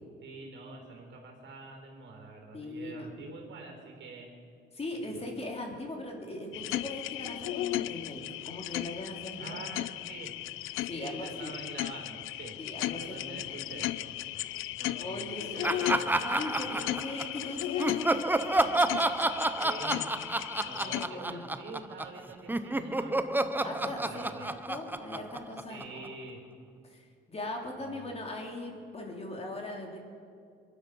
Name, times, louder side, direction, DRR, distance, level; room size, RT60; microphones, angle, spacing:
voice 1, 0.2-4.3 4.9-5.2 9.4-10.3 11.0-12.6 13.0-14.1 14.8-16.3 19.6-20.1 20.6-24.5 25.7-26.4 27.8-28.1, right 3 dB, 70° right, 2 dB, 3.8 m, -46 dB
voice 2, 2.5-3.1 4.7-9.7 10.9-11.5 12.6-13.8 15.0-18.9 20.8-21.4 23.6-26.0 26.9-30.0, left 2 dB, 30° left, 0 dB, 3.2 m, -40 dB
sound 1, 6.5-21.1, left 15 dB, 85° left, 0.5 m, -36 dB
Laughter, 15.6-17.4 17.8-22.2 22.5-26.1, right 2 dB, 10° right, 0.7 m, -30 dB
22.5 x 11.5 x 5.5 m, 2.4 s
cardioid pair, 90°, 20 cm